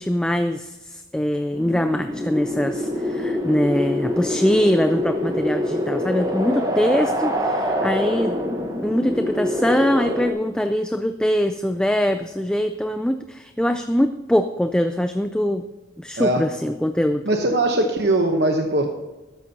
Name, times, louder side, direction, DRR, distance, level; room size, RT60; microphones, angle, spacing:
voice 1, 0.0-8.4 8.8-15.7 16.0-17.3, equal, 5° left, 8 dB, 0.3 m, -22 dB
sound 1, 1.5-10.3, left 1 dB, 20° right, 1.1 m, -25 dB
voice 2, 17.2-18.9, right 1 dB, 65° right, 3 dB, 1.0 m, -20 dB
13.5 x 12.0 x 2.8 m, 1.1 s
head